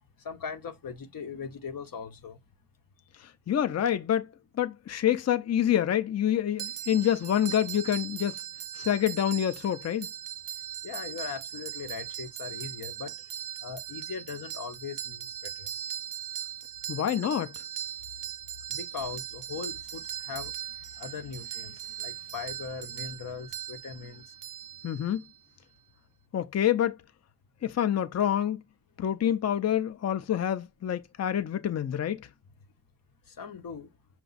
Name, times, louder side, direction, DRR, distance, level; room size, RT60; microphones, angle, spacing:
voice 1, 0.2-2.4 10.8-13.1 13.6-15.7 18.7-20.5 21.0-24.2 33.3-33.9, left 6 dB, 90° left, 0.8 m, -39 dB
voice 2, 3.2-4.3 4.6-8.4 8.7-10.1 16.9-17.5 24.8-25.2 26.3-27.0 27.6-28.6 29.0-32.3, left 10 dB, 50° left, 0.4 m, -27 dB
sound 1, 6.6-25.4, right 10 dB, 70° right, 0.5 m, -39 dB
5.9 x 2.2 x 3.9 m
wide cardioid pair, 80°, 33 cm